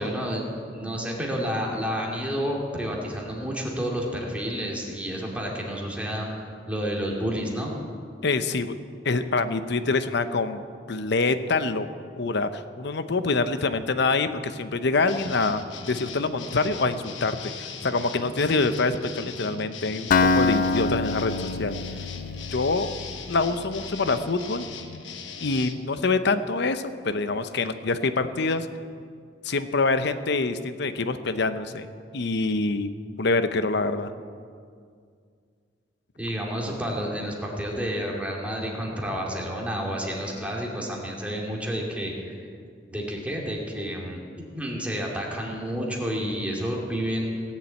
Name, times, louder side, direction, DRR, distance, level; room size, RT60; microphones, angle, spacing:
voice 1, 0.0-7.7 36.1-42.3 42.9-44.2 44.5-47.4, equal, 5° right, -2 dB, 2.5 m, -30 dB
voice 2, 8.2-8.8 9.0-10.6 10.9-11.9 12.2-15.6 15.9-21.3 21.6-21.8 22.5-22.9 23.3-24.7 25.4-28.7 29.4-31.9 32.1-32.9 33.2-34.1, left 3 dB, 65° left, 11 dB, 0.8 m, -25 dB
sound 1, 15.1-25.8, left 5 dB, 85° left, 1.3 m, -39 dB
Acoustic guitar, 20.1-24.0, left 3 dB, 50° left, 0.4 m, -25 dB
17.5 x 7.5 x 8.6 m, 2.2 s
head